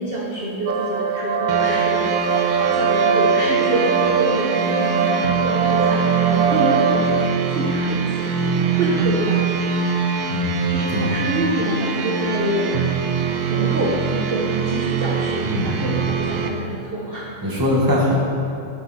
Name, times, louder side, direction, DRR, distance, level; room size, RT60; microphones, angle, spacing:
voice 1, 0.0-7.2 7.5-9.7 10.1-10.2 10.7-12.9 13.5-17.3, right 1 dB, 40° right, -5 dB, 0.9 m, -27 dB
sound 1, 0.7-7.2, right 6 dB, 75° right, 0.8 m, -21 dB
sound 2, 1.5-16.5, right 5 dB, 90° right, 1.7 m, -23 dB
voice 2, 10.3-10.6 10.9-11.0 15.4-15.8 17.4-18.1, equal, 10° right, -5 dB, 1.3 m, -21 dB
9.5 x 8.0 x 4.3 m, 2.6 s
omnidirectional pair, 2.3 m